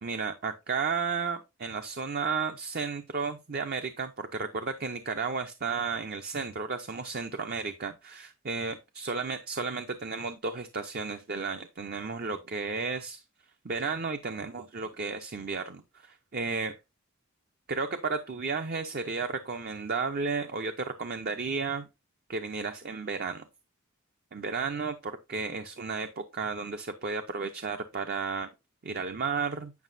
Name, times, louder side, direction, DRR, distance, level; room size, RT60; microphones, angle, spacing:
voice 1, 0.0-13.2 13.6-16.8 17.7-21.9 22.3-23.5 24.3-28.5 28.8-29.7, right 4 dB, 45° right, 0.6 m, -33 dB
9.4 x 5.7 x 2.6 m
head